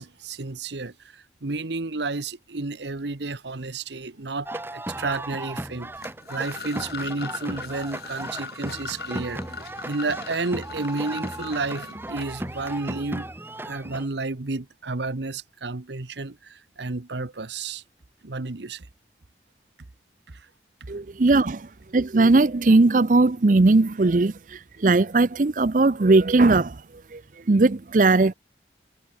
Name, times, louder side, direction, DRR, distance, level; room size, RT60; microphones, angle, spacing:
voice 1, 0.0-9.4 9.9-13.3 13.6-17.8 18.2-18.9 20.3-20.5, right 3 dB, 75° right, 1.1 m, -31 dB
sound 1, 4.5-14.1, right 1 dB, 10° right, 1.0 m, -36 dB
sound 2, 6.0-12.8, left 4 dB, 60° left, 6.6 m, -39 dB
voice 2, 20.9-21.7 21.9-26.8 27.1-27.2 27.5-28.3, right 3 dB, 45° right, 0.6 m, -19 dB
head